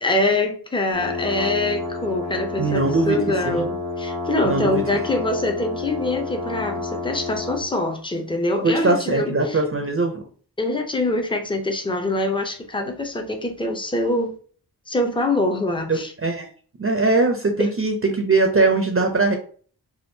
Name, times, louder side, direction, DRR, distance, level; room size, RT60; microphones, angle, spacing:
voice 1, 0.0-9.6 10.6-14.3 14.9-16.1, left 2 dB, 15° left, 0.5 m, -24 dB
sound 1, 0.9-7.7, left 3 dB, 60° left, 1.0 m, -30 dB
voice 2, 2.6-3.7 4.4-4.8 8.6-10.2 15.9-16.5 16.8-19.4, right 3 dB, 35° right, 0.5 m, -21 dB
3.5 x 2.3 x 2.6 m
wide cardioid pair, 80°, 40 cm